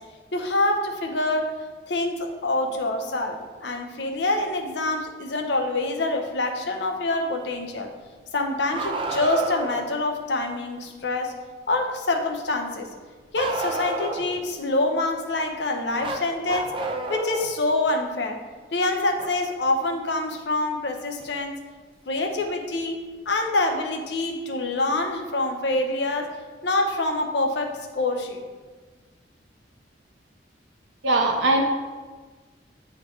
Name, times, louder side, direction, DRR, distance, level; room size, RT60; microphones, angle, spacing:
voice 1, 0.3-1.5 1.9-7.9 8.3-11.3 11.7-12.9 13.3-16.7 17.1-18.4 18.7-21.6 22.1-23.0 23.3-26.3 26.6-28.4, left 2 dB, 70° left, 3 dB, 0.8 m, -26 dB
Bark, 8.7-9.8 13.4-14.4 16.0-17.5 19.2-19.3 21.2-21.3 22.4-22.5, right 2 dB, 30° right, 0.5 m, -30 dB
voice 2, 31.0-31.6, right 2 dB, 80° right, 1 dB, 1.0 m, -20 dB
9.3 x 3.7 x 3.2 m, 1.4 s
head